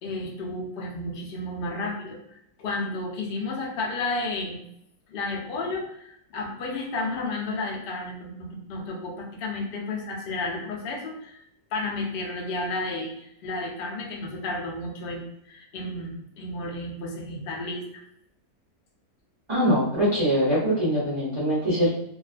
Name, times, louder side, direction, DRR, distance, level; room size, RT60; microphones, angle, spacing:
voice 1, 0.0-4.6 5.1-11.4 11.7-18.0, left 2 dB, 60° left, 0 dB, 0.6 m, -32 dB
voice 2, 19.5-21.9, equal, 30° right, -9 dB, 0.6 m, -23 dB
2.4 x 2.3 x 2.3 m, 0.76 s
omnidirectional pair, 1.6 m